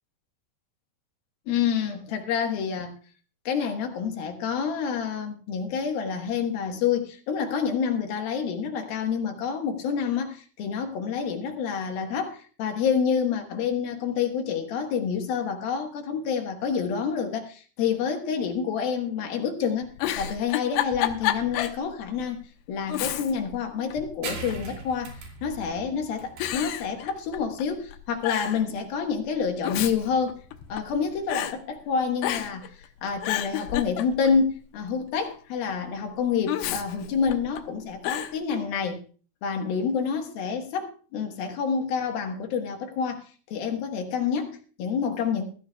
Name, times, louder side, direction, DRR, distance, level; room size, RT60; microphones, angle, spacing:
voice 1, 1.5-2.9 3.5-22.4 22.7-30.4 30.7-39.0 39.4-45.5, left 6 dB, 70° left, 3.1 m, -28 dB
Giggle, 19.8-21.8 22.2-22.3 22.9-23.6 23.9-24.7 25.5-25.9 26.4-27.6 27.9-28.0 28.2-28.6 29.4-31.0 31.3-31.5 32.2-32.7 33.0-34.4 36.5-37.6 38.0-38.3, left 12 dB, 90° left, 3.0 m, -30 dB
sound 1, 24.2-31.4, right 4 dB, 70° right, 4.7 m, -42 dB
21.5 x 13.5 x 2.3 m
omnidirectional pair, 4.7 m